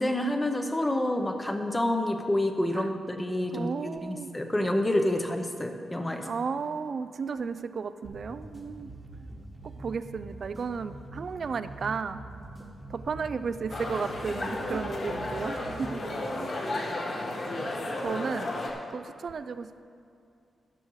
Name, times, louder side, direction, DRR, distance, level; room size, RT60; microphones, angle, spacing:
voice 1, 0.0-6.3, left 1 dB, 10° left, 5 dB, 0.7 m, -28 dB
voice 2, 3.5-4.3 6.2-8.9 9.6-12.2 12.9-16.0 16.3-16.5 18.0-18.5 18.9-19.8, right 5 dB, 45° right, 12 dB, 0.4 m, -34 dB
sound 1, 8.0-16.1, right 2 dB, 15° right, 1.2 m, -44 dB
sound 2, 13.7-18.7, left 1 dB, 50° left, 1.5 m, -33 dB
14.0 x 11.0 x 3.2 m, 2.5 s
wide cardioid pair, 155°, 0 cm